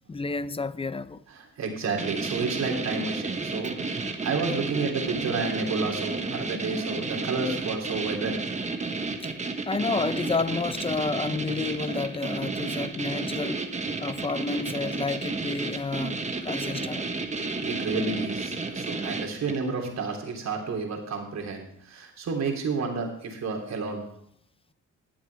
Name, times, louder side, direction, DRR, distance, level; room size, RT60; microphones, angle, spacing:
voice 1, 0.1-1.2 9.2-9.3 9.7-13.7 14.0-17.1, left 4 dB, 20° left, 0.5 m, -30 dB
voice 2, 1.3-8.4 17.2-24.1, right 4 dB, 60° right, 3.3 m, -31 dB
sound 1, 2.0-19.7, right 3 dB, 25° right, 1.3 m, -32 dB
20.5 x 7.3 x 3.5 m
cardioid pair, 90°, 30 cm